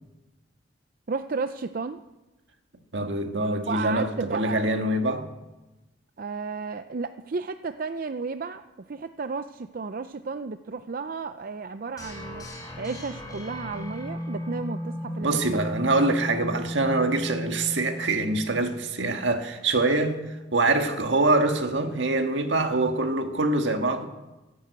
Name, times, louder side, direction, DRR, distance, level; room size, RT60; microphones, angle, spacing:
voice 1, 1.1-2.0 3.7-4.7 6.2-12.5 12.8-15.4, right 4 dB, 50° right, 0.5 m, -33 dB
voice 2, 2.9-5.3 15.2-20.2 20.5-24.1, right 2 dB, 75° right, 1.7 m, -24 dB
sound 1, 12.0-18.9, equal, 20° left, 4.4 m, -35 dB
16.0 x 11.0 x 8.2 m
head